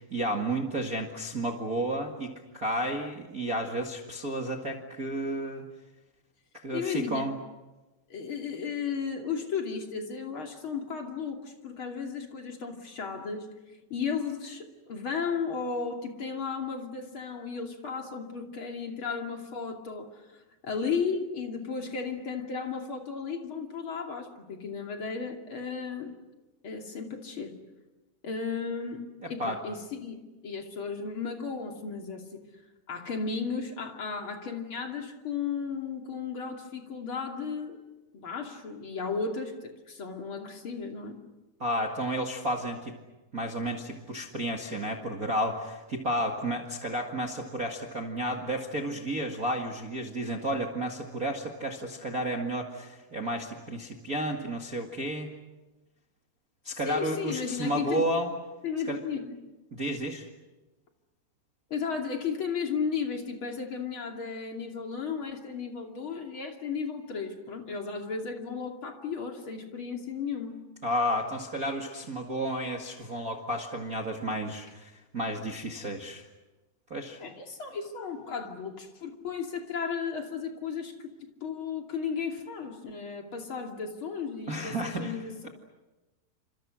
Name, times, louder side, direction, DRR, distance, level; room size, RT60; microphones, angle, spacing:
voice 1, 0.0-5.7 6.6-7.3 29.2-29.6 41.6-42.9 43.3-55.3 56.6-58.3 58.9-59.0 59.7-60.3 70.8-76.2 76.9-77.2 84.5-85.2, right 1 dB, 50° right, 2 dB, 1.0 m, -32 dB
voice 2, 6.7-7.3 8.1-13.5 13.9-26.1 26.6-27.6 28.2-30.2 30.4-32.4 32.9-37.8 38.1-41.2 56.8-58.1 58.6-59.4 61.7-70.6 77.2-81.1 81.4-85.3, left 5 dB, 35° left, 3 dB, 2.7 m, -34 dB
29.5 x 27.5 x 6.4 m, 1.1 s
omnidirectional pair, 5.2 m